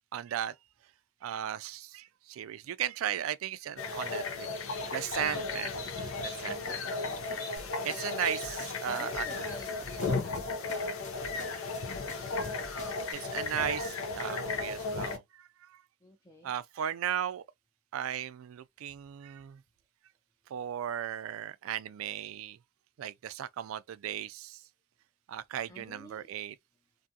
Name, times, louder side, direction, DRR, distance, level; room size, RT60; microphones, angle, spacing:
voice 1, 0.1-0.5 1.2-4.5 4.8-5.7 6.2-6.8 7.8-9.3 11.5-11.6 12.4-12.5 12.8-15.8 16.4-17.4 17.9-19.6 20.5-22.6 23.0-24.6 25.3-26.6, right 10 dB, 90° right, 0.3 m, -36 dB
sound 1, 3.8-15.2, left 3 dB, 80° left, 0.6 m, -35 dB
voice 2, 5.2-5.9 6.8-7.6 8.9-9.7 10.0-11.5 12.0-12.4 16.0-16.5 25.7-26.3, left 1 dB, 15° left, 0.4 m, -51 dB
sound 2, 7.6-13.1, left 1 dB, 35° left, 0.9 m, -49 dB
2.6 x 2.4 x 2.6 m
head